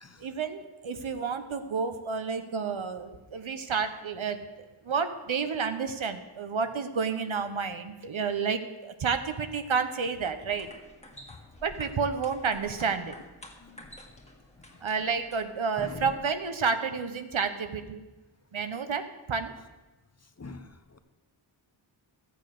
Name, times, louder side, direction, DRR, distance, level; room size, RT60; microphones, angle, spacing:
voice 1, 0.2-4.4 4.8-10.7 11.6-13.2 14.8-18.0 18.5-19.5, right 5 dB, 70° right, 9 dB, 1.1 m, -30 dB
sound 1, 10.3-15.7, left 1 dB, 15° left, 1.7 m, -51 dB
voice 2, 15.8-16.1 20.4-21.0, left 3 dB, 30° left, 9 dB, 0.9 m, -43 dB
13.5 x 8.2 x 6.6 m, 1.1 s
wide cardioid pair, 100°, 49 cm